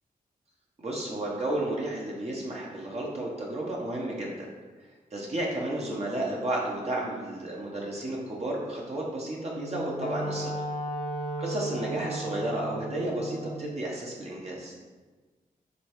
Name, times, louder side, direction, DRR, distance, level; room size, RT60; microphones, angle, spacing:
voice 1, 0.8-4.5 5.1-10.5 11.4-14.7, right 1 dB, 45° right, -3 dB, 0.9 m, -32 dB
Wind instrument woodwind instrument, 9.5-13.7, right 1 dB, 60° left, 0.6 m, -35 dB
5.2 x 3.2 x 3.0 m, 1.3 s
cardioid pair, 70°, 15 cm